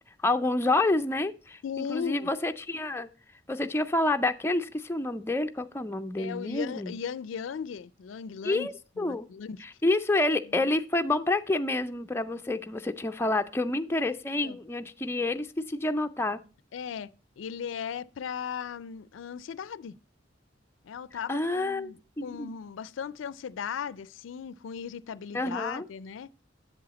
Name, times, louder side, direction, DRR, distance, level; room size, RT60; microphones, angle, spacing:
voice 1, 0.2-3.1 3.5-6.9 8.4-9.3 9.6-16.4 21.3-22.5 25.3-25.8, left 2 dB, 15° left, 0.4 m, -28 dB
voice 2, 1.6-2.3 6.2-8.7 9.0-9.6 10.5-10.7 14.4-14.6 16.7-20.0 20.8-26.3, left 7 dB, 90° left, 0.4 m, -37 dB
7.7 x 7.5 x 4.0 m
head